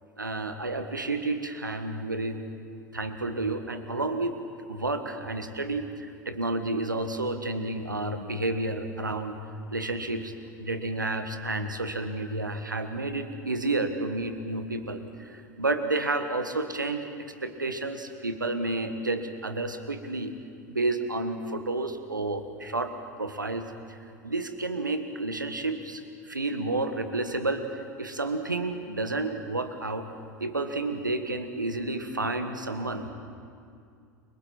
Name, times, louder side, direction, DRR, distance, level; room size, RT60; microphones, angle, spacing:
voice 1, 0.2-2.4 2.9-4.3 4.7-9.4 9.7-10.3 10.6-17.1 17.4-20.3 20.7-22.9 23.2-24.0 24.2-27.7 28.0-30.1 30.4-33.1, right 2 dB, 85° right, 8 dB, 1.5 m, -30 dB
29.5 x 23.5 x 4.5 m, 2.4 s
figure-of-eight pair, 80°, 10 cm